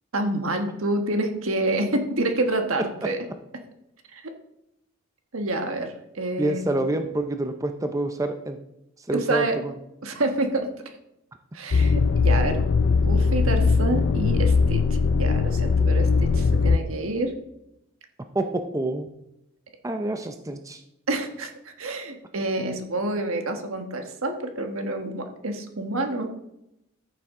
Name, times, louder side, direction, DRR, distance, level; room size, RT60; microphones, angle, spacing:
voice 1, 0.1-3.2 4.1-4.2 5.3-7.0 9.1-9.6 10.0-10.7 11.5-17.3 21.1-26.4, right 2 dB, 75° right, 5 dB, 1.4 m, -28 dB
voice 2, 6.4-8.6 9.1-9.7 18.3-19.1 19.8-20.8, right 2 dB, 15° right, 7 dB, 0.5 m, -27 dB
sound 1, 11.7-16.8, left 4 dB, 60° left, 0.4 m, -20 dB
14.0 x 7.0 x 3.7 m, 0.84 s
head